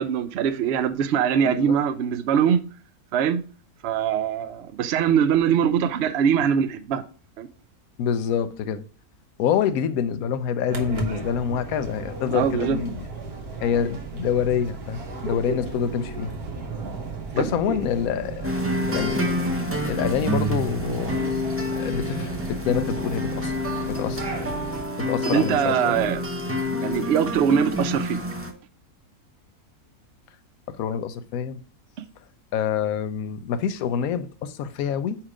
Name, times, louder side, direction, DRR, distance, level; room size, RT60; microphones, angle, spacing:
voice 1, 0.0-2.6 3.1-3.4 3.8-7.0 7.4-7.5 12.3-12.8 17.4-17.8 25.2-26.2 26.8-28.2, right 8 dB, 60° right, 0.7 m, -22 dB
voice 2, 1.4-1.8 8.0-8.8 9.4-12.9 13.6-16.3 17.3-18.5 18.9-19.2 19.8-21.2 21.8-23.5 23.8-24.2 25.1-26.0 30.8-31.6 32.5-35.2, left 8 dB, 75° left, 1.0 m, -26 dB
sound 1, 10.7-24.8, right 4 dB, 80° right, 1.6 m, -34 dB
sound 2, 18.4-28.5, left 1 dB, 20° right, 0.4 m, -28 dB
4.8 x 4.4 x 4.8 m
omnidirectional pair, 1.6 m